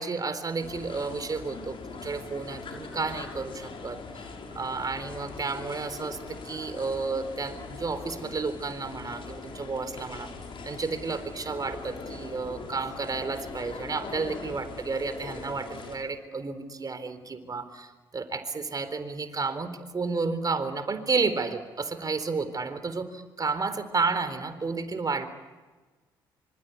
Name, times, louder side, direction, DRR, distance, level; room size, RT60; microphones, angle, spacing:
voice 1, 0.0-10.3 10.6-25.3, right 4 dB, 35° right, 11 dB, 3.9 m, -32 dB
sound 1, 0.6-16.0, left 4 dB, 55° left, 5.9 m, -41 dB
26.5 x 26.0 x 8.3 m, 1.3 s
hypercardioid pair, 50°, 11 cm